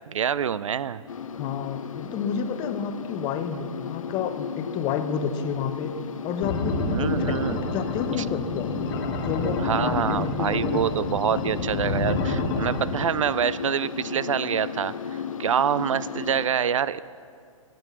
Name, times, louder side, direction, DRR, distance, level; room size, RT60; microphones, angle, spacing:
voice 1, 0.1-1.0 6.9-7.6 9.6-14.9 15.4-17.0, right 8 dB, 70° right, 18 dB, 0.4 m, -26 dB
sound 1, 1.1-16.5, left 7 dB, 75° left, 0.6 m, -35 dB
voice 2, 1.4-6.0 6.2-7.3 7.7-8.8 9.2-10.8 11.2-11.3, left 7 dB, 25° left, 8 dB, 0.9 m, -30 dB
sound 2, 6.4-12.8, left 3 dB, 45° left, 1.6 m, -28 dB
20.5 x 7.8 x 5.8 m, 2.3 s
figure-of-eight pair, 115°, 17 cm